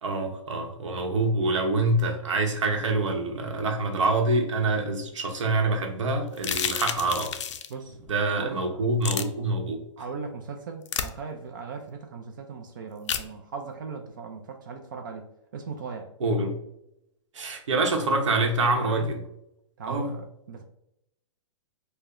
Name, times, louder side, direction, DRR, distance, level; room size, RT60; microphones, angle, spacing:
voice 1, 0.0-7.3 8.1-9.8 16.2-16.6 17.3-19.2 19.9-20.1, right 2 dB, 70° right, 0.8 m, -26 dB
sound 1, 6.4-7.7 9.0-9.2 10.9-11.1 13.1-13.3, left 8 dB, 65° left, 0.4 m, -29 dB
voice 2, 8.3-8.8 10.0-16.1 18.6-19.1 19.8-20.6, right 5 dB, 40° right, 0.4 m, -38 dB
4.6 x 2.0 x 2.5 m
hypercardioid pair, 170°, 16 cm